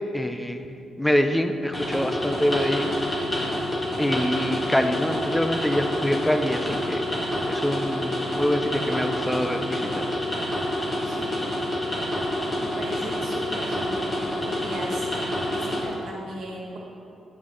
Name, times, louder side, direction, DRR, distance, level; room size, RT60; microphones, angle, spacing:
voice 1, 0.1-0.7 1.0-3.2 4.0-7.1 7.5-10.1, equal, 10° left, 7 dB, 0.5 m, -25 dB
sound 1, 1.7-15.8, equal, 25° left, 1.7 m, -28 dB
voice 2, 11.0-11.6 12.6-15.1 15.5-16.8, right 1 dB, 65° right, -2 dB, 1.6 m, -37 dB
8.0 x 5.4 x 3.8 m, 2.6 s
cardioid pair, 75°, 0 cm